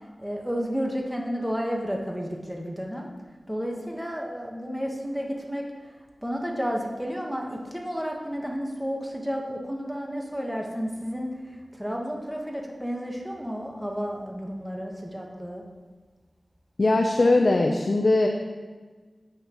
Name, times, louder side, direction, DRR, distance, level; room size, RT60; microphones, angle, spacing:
voice 1, 0.2-3.1 3.5-5.6 6.2-15.6, equal, 5° right, 0 dB, 1.3 m, -31 dB
voice 2, 16.8-18.3, left 2 dB, 65° left, 2 dB, 0.6 m, -20 dB
9.8 x 8.2 x 3.0 m, 1.4 s
wide cardioid pair, 60°, 0 cm